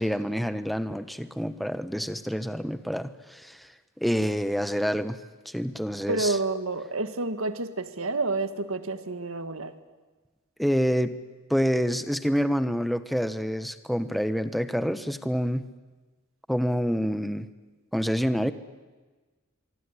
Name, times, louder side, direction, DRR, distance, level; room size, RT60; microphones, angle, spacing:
voice 1, 0.0-3.7 4.0-5.2 5.4-6.4 10.6-11.1 11.5-15.6 16.5-17.5 17.9-18.5, equal, ahead, 12 dB, 1.1 m, -27 dB
voice 2, 6.1-9.7, right 3 dB, 70° right, 11 dB, 1.9 m, -29 dB
25.0 x 23.5 x 9.9 m, 1.3 s
head